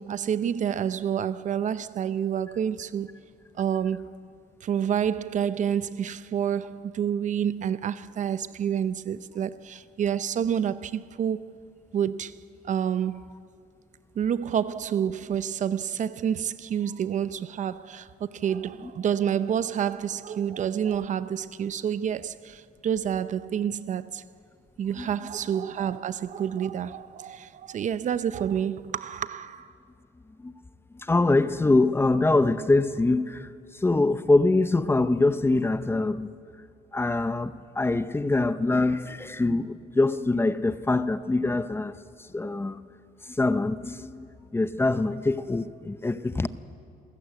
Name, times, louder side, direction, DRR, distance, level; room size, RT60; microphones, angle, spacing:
voice 1, 0.0-3.1 3.6-4.2 4.6-11.5 11.9-13.4 14.2-24.3 24.8-29.7, right 8 dB, 45° right, 0.7 m, -28 dB
voice 2, 30.9-36.3 36.9-42.0 42.3-42.9 43.3-46.5, left 2 dB, 15° left, 0.7 m, -24 dB
27.5 x 15.5 x 8.3 m
cardioid pair, 110°, 17 cm